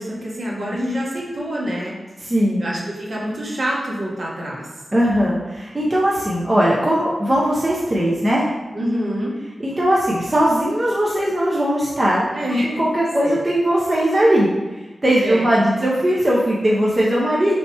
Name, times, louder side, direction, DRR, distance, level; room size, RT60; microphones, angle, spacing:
voice 1, 0.0-2.0 2.6-4.8 8.7-9.4 12.3-12.8 13.2-13.4 15.2-15.5, equal, 60° right, -5 dB, 1.1 m, -26 dB
voice 2, 2.2-2.6 4.9-8.5 9.6-12.2 12.8-17.6, equal, 25° right, -5 dB, 0.5 m, -19 dB
3.3 x 2.8 x 4.1 m, 1.2 s
wide cardioid pair, 125°, 0 cm